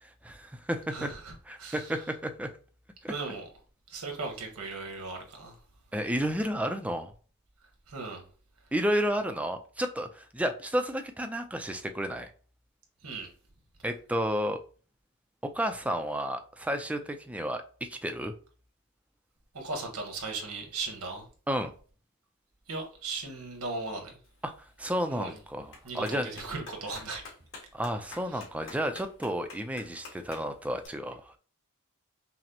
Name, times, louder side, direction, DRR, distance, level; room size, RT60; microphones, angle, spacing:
voice 1, 0.0-1.1 1.5-2.5 3.0-3.1 5.9-7.1 8.7-12.3 13.8-14.6 15.4-18.3 21.5-21.7 24.4-24.5 24.8-26.3 27.7-31.4, equal, 5° right, 0.3 m, -31 dB
voice 2, 0.9-2.0 3.1-3.5 3.9-5.6 7.9-8.2 13.0-13.3 19.5-21.3 22.7-24.2 25.1-25.4 25.8-27.2 28.3-28.4, right 3 dB, 80° right, 1.2 m, -37 dB
Clapping, 24.2-30.9, left 3 dB, 60° left, 1.4 m, -51 dB
5.8 x 2.0 x 2.8 m
head